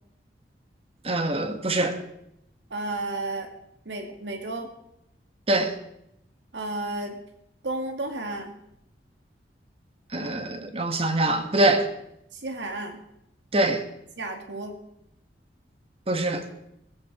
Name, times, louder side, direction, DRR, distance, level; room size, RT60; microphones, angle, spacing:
voice 1, 1.0-2.0 5.5-5.7 10.1-11.9 13.5-13.8 16.1-16.4, right 2 dB, 35° right, 1.4 m, -24 dB
voice 2, 2.7-3.5 3.9-4.7 6.5-7.2 7.6-8.6 12.3-13.0 14.2-14.8, right 2 dB, 90° right, 2.2 m, -32 dB
16.0 x 15.5 x 4.9 m
head